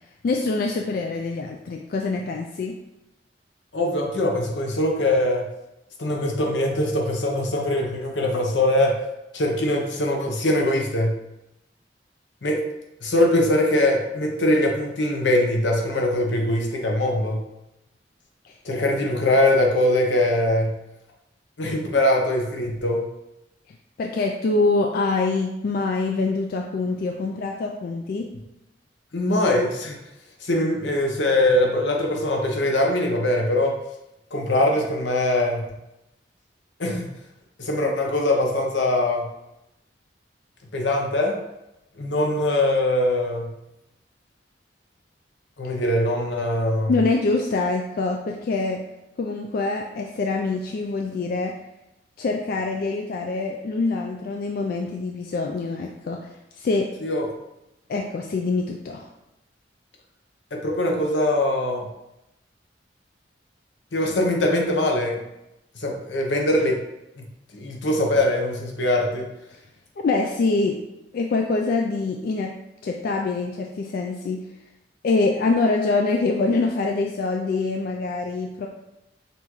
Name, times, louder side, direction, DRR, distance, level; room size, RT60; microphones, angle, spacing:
voice 1, 0.2-2.8 18.4-18.5 24.0-28.3 46.9-48.8 49.2-51.6 52.2-56.3 56.6-56.9 57.9-59.1 70.0-70.8 71.1-72.5 72.8-74.4 75.0-78.7, left 3 dB, 55° left, 2 dB, 0.3 m, -25 dB
voice 2, 3.7-5.5 6.0-9.0 9.3-11.2 12.4-12.6 13.0-17.5 18.6-20.8 21.6-23.1 29.1-30.0 30.4-33.8 34.3-35.6 36.8-37.1 37.6-39.3 40.7-41.4 42.0-43.5 45.6-46.9 57.0-57.3 60.5-61.9 63.9-65.2 65.7-66.8 67.2-67.3 67.5-69.3, left 1 dB, 80° left, 1 dB, 0.8 m, -22 dB
5.5 x 2.5 x 3.0 m, 0.91 s
head